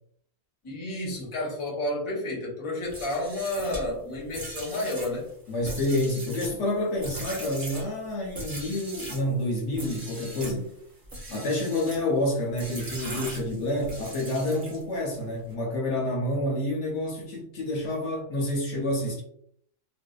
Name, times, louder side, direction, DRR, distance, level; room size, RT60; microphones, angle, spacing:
voice 1, 0.6-5.3, left 1 dB, 30° left, -3 dB, 0.7 m, -31 dB
sound 1, 2.8-9.3 9.7-10.6 11.0-12.1 12.6-15.0, right 1 dB, 35° right, 0.3 m, -40 dB
voice 2, 5.5-10.7 11.3-19.2, left 1 dB, 70° left, -1 dB, 0.9 m, -28 dB
2.6 x 2.2 x 2.2 m, 0.68 s
omnidirectional pair, 1.4 m